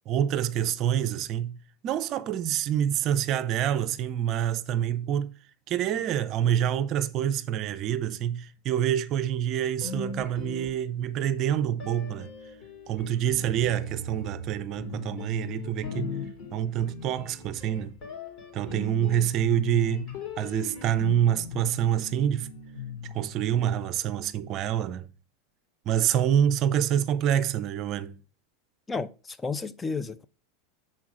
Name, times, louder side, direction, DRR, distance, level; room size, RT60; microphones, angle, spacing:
voice 1, 0.1-1.6 1.8-5.4 5.7-12.3 12.9-16.2 16.5-17.9 18.5-20.1 20.4-22.5 23.0-25.1 25.9-28.2, right 10 dB, 45° right, 0.5 m, -27 dB
sound 1, 9.8-11.3 11.8-24.0, left 4 dB, 50° left, 2.7 m, -39 dB
voice 2, 28.9-30.2, left 4 dB, 15° left, 0.4 m, -32 dB
6.1 x 4.4 x 4.8 m
hypercardioid pair, 115°, 0 cm